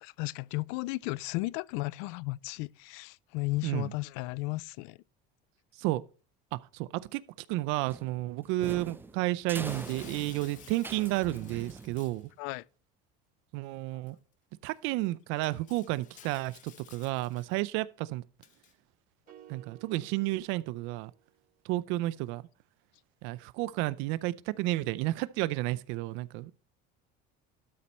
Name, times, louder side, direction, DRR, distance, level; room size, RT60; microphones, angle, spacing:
voice 1, 0.0-5.0 12.4-12.6, left 22 dB, 80° left, 0.4 m, -34 dB
voice 2, 6.5-12.3 13.5-14.2 14.6-18.2 19.5-21.1 21.6-22.5 23.2-26.5, right 18 dB, 70° right, 0.5 m, -32 dB
sound 1, 7.9-12.3, right 3 dB, 10° right, 0.5 m, -43 dB
Shatter, 9.6-12.3 14.1-14.2 14.6-14.8 15.4-17.6 18.4-18.7, left 10 dB, 40° left, 0.8 m, -54 dB
sound 2, 19.3-21.6, right 11 dB, 45° right, 0.8 m, -56 dB
12.5 x 4.3 x 5.3 m
cardioid pair, 150°, 20 cm